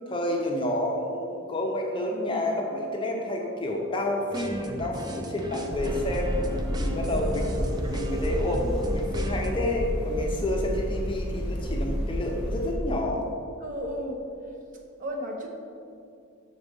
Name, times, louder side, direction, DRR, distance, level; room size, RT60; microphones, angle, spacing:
voice 1, 0.1-6.3 6.8-13.3, left 1 dB, 25° left, 0 dB, 0.6 m, -29 dB
sound 1, 4.3-9.6, equal, 20° right, 0.3 m, -35 dB
sound 2, 5.7-12.7, equal, ahead, 1.5 m, -30 dB
voice 2, 13.6-14.2 15.0-15.5, equal, 35° right, 0 dB, 0.8 m, -33 dB
6.3 x 4.0 x 5.2 m, 2.4 s
head